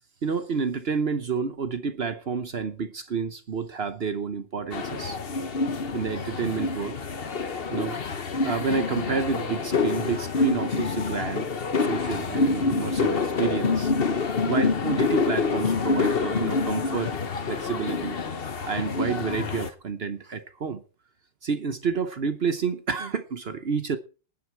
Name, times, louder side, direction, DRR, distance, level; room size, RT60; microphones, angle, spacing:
voice 1, 0.2-5.2 5.9-7.0 7.7-11.5 11.8-13.9 14.4-17.2 17.5-18.2 18.6-20.8 21.4-24.0, right 5 dB, 65° right, 0.6 m, -29 dB
sound 1, 4.7-19.7, left 4 dB, 40° left, 0.8 m, -27 dB
19.0 x 9.9 x 4.6 m
omnidirectional pair, 2.4 m